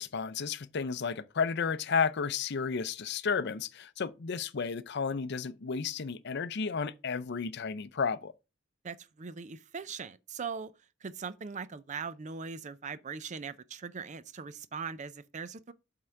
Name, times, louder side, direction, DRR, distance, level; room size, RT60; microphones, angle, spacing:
voice 1, 0.0-8.3, left 5 dB, 60° left, 0.5 m, -32 dB
voice 2, 8.8-10.7 11.0-15.7, right 5 dB, 40° right, 0.5 m, -40 dB
7.8 x 3.7 x 5.6 m
head